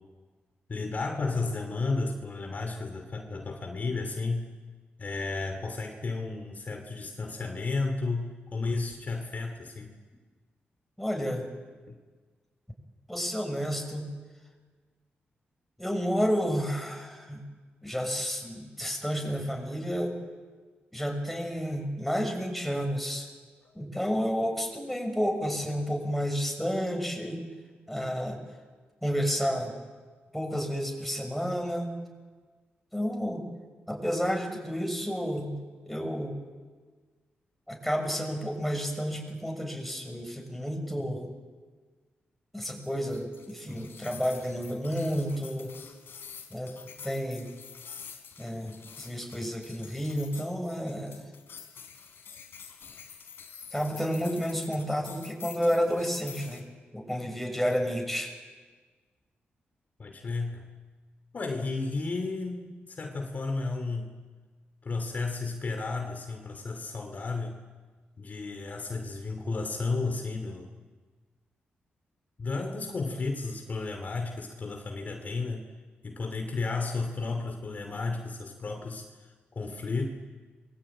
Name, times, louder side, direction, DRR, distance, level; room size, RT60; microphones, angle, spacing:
voice 1, 0.7-4.5 5.0-9.9 11.9-12.0 23.6-23.7 60.0-60.7 61.3-64.2 64.8-67.6 68.2-70.7 72.4-75.7 76.0-80.1, left 3 dB, 45° left, 4 dB, 2.8 m, -33 dB
voice 2, 11.0-11.5 13.1-14.1 15.8-17.4 17.8-20.1 20.9-23.3 23.7-27.4 27.9-28.4 29.0-29.7 30.3-31.9 32.9-33.4 33.9-35.5 35.8-36.3 37.7-41.3 42.5-45.7 46.5-46.7 47.0-47.5 48.4-51.2 53.7-56.6 56.9-58.3, equal, ahead, 2 dB, 6.5 m, -31 dB
sound 1, 42.6-56.6, left 6 dB, 70° left, 3.6 m, -48 dB
27.5 x 22.0 x 8.9 m, 1.4 s
cardioid pair, 95°, 4 cm